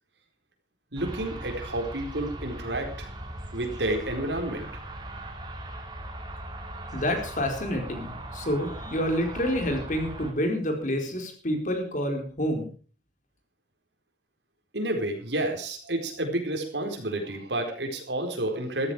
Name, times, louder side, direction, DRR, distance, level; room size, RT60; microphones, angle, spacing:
voice 1, 0.9-3.1 3.5-4.7 14.7-18.9, right 1 dB, 80° right, 4 dB, 4.4 m, -30 dB
sound 1, 1.0-10.3, right 1 dB, 25° right, 3.1 m, -39 dB
voice 2, 6.9-12.7, equal, 45° left, 4 dB, 4.4 m, -28 dB
14.5 x 14.0 x 5.0 m, 0.39 s
head